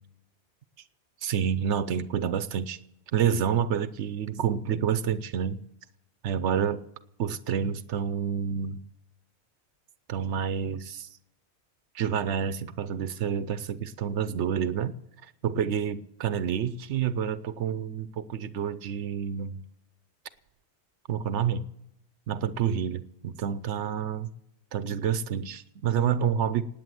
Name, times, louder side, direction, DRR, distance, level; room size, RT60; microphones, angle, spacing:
voice 1, 1.2-2.8 3.1-5.6 6.2-6.8 7.2-8.8 10.1-11.1 11.9-14.9 15.4-19.6 21.1-21.6 22.3-24.3 24.7-26.7, right 8 dB, 85° right, 14 dB, 1.0 m, -28 dB
18.5 x 8.9 x 7.7 m, 0.81 s
omnidirectional pair, 1.1 m